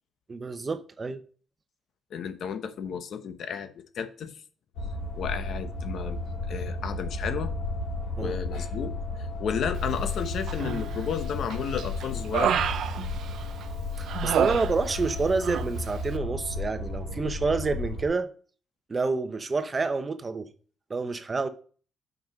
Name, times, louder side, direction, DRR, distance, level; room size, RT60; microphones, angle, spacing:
voice 1, 0.3-1.2 8.2-8.4 14.0-18.3 18.9-20.5 20.9-21.5, right 4 dB, 30° right, 0.9 m, -28 dB
voice 2, 2.1-4.3 5.2-6.2 6.5-7.5 8.2-8.9 9.4-12.5, left 7 dB, 65° left, 1.0 m, -32 dB
sound 1, 4.8-18.1, left 2 dB, 90° left, 3.4 m, -33 dB
Human voice, 10.5-11.1 11.5-13.6 14.1-15.2 15.4-15.7, right 9 dB, 70° right, 0.5 m, -29 dB
5.7 x 5.3 x 6.4 m
cardioid pair, 90°, 0 cm